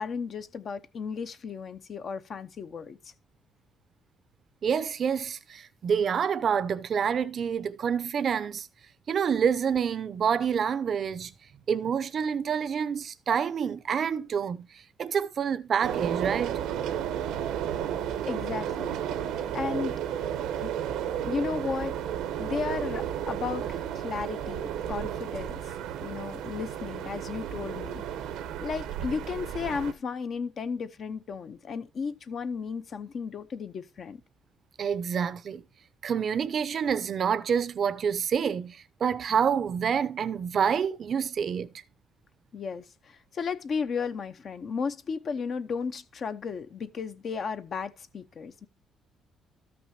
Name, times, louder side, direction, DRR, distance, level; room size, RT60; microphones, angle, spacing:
voice 1, 0.0-3.0 18.2-19.0 19.5-20.7 21.2-22.0 22.4-25.6 26.0-28.0 28.6-34.2 42.5-48.7, left 5 dB, 40° left, 0.7 m, -34 dB
voice 2, 4.6-8.7 9.1-11.3 11.7-14.7 15.0-16.6 34.8-35.6 36.0-41.7, right 7 dB, 40° right, 0.6 m, -27 dB
sound 1, 15.8-29.9, right 10 dB, 85° right, 1.0 m, -33 dB
13.5 x 6.0 x 2.8 m
cardioid pair, 155°, 0 cm